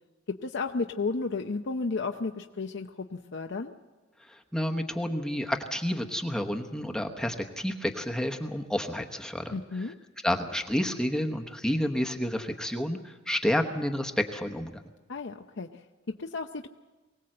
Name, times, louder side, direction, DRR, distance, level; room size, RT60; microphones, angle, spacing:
voice 1, 0.3-3.7 9.5-10.0 15.1-16.7, left 3 dB, 65° left, 5 dB, 0.7 m, -33 dB
voice 2, 4.3-9.5 10.2-14.8, equal, 5° left, 3 dB, 1.0 m, -30 dB
23.5 x 17.5 x 7.7 m, 1.3 s
head